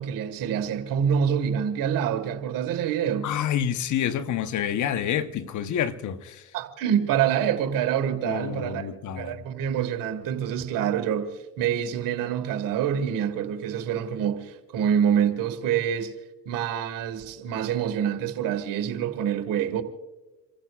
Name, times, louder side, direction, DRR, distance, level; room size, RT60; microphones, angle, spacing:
voice 1, 0.0-3.3 6.5-8.9 9.2-16.1 16.5-19.8, right 8 dB, 70° right, 1.9 m, -26 dB
voice 2, 3.2-6.4 8.2-9.4, left 9 dB, 60° left, 1.1 m, -28 dB
28.5 x 15.0 x 2.5 m
hypercardioid pair, 60°, 34 cm